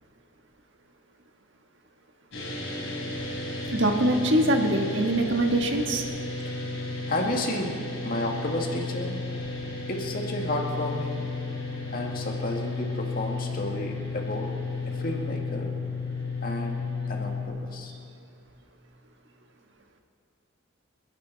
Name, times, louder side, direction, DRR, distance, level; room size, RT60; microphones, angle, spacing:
sound 1, 2.3-17.5, left 3 dB, 60° left, 3.7 m, -33 dB
voice 1, 3.7-6.1, right 1 dB, 60° right, 4 dB, 1.5 m, -23 dB
voice 2, 7.1-7.8 8.0-9.2 9.9-11.3 11.9-14.5 14.9-15.7 16.4-16.8 17.1-17.9, left 1 dB, 45° left, 1 dB, 2.0 m, -32 dB
30.0 x 10.5 x 4.1 m, 2.7 s
head